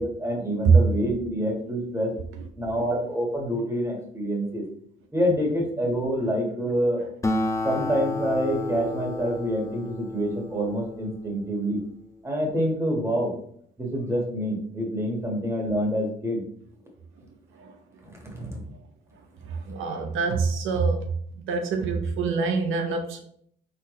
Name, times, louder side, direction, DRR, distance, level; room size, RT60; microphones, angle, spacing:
voice 1, 0.0-2.1 2.6-4.6 5.1-7.0 7.6-11.8 12.2-13.3 13.8-16.4 18.0-18.6, equal, 15° right, 0 dB, 1.6 m, -27 dB
Acoustic guitar, 7.2-12.1, left 2 dB, 15° left, 0.6 m, -31 dB
voice 2, 19.5-21.0 21.4-23.2, right 4 dB, 85° right, 4 dB, 0.7 m, -26 dB
4.1 x 4.0 x 3.1 m, 0.64 s
cardioid pair, 90°, 20 cm